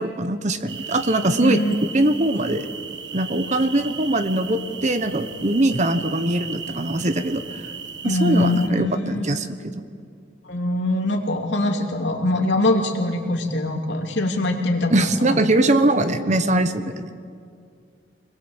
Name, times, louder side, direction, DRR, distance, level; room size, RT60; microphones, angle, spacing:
voice 1, 0.0-1.6 1.9-2.7 3.1-7.4 8.0-9.8 14.9-17.1, right 1 dB, 40° right, 10 dB, 1.1 m, -22 dB
sound 1, 0.7-8.7, right 6 dB, 70° right, 1.6 m, -36 dB
voice 2, 1.4-1.7 8.0-9.3 10.5-15.1, left 2 dB, 70° left, 1 dB, 2.9 m, -22 dB
25.5 x 21.0 x 8.1 m, 2.3 s
head